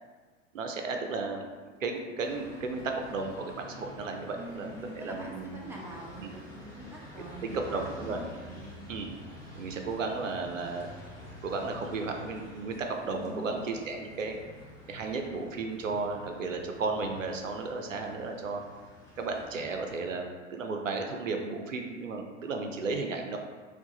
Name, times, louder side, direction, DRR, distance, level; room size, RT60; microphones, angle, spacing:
voice 1, 0.5-1.4 1.8-5.6 6.2-6.3 7.4-8.2 8.9-9.1 9.6-10.9 11.4-14.4 14.9-18.6 19.2-23.4, right 3 dB, 90° right, 3 dB, 0.6 m, -34 dB
Run, 1.5-2.5 2.8-4.3 4.6-6.1 6.4-6.5, equal, 25° right, 1.4 m, -54 dB
sound 1, 2.2-20.0, equal, 10° left, 1.2 m, -49 dB
voice 2, 4.3-8.8 13.2-13.6, right 1 dB, 5° right, -3 dB, 0.9 m, -45 dB
4.5 x 2.3 x 3.9 m, 1.5 s
figure-of-eight pair, 85°, 38 cm